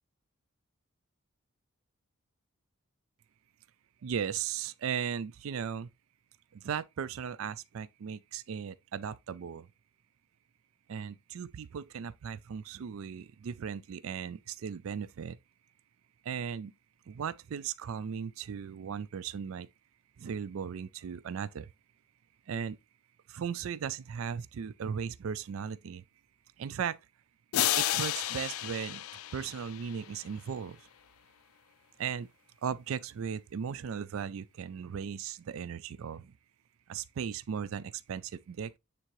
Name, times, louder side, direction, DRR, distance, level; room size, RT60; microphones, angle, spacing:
voice 1, 4.0-5.9 6.5-9.7 10.9-15.4 16.2-16.7 17.1-19.7 20.2-21.7 22.5-22.8 23.3-26.0 26.6-27.0 27.8-29.0 29.3-30.9 32.0-32.3 32.6-36.3 36.9-38.8, right 7 dB, 70° right, 0.4 m, -37 dB
sound 1, 27.5-30.2, left 13 dB, 80° left, 0.5 m, -32 dB
9.2 x 3.7 x 3.0 m
head